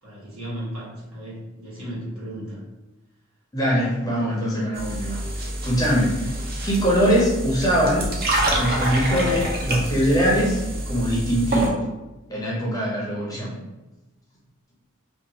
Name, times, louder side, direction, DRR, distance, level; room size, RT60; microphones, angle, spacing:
voice 1, 0.0-2.6, equal, 80° right, -7 dB, 1.2 m, -35 dB
voice 2, 3.5-5.2 5.6-6.3 6.6-8.1 8.5-11.8 12.3-13.6, equal, 15° left, -5 dB, 0.6 m, -22 dB
sound 1, 4.7-11.7, right 1 dB, 45° right, 0.5 m, -27 dB
2.6 x 2.3 x 2.7 m, 1.1 s
head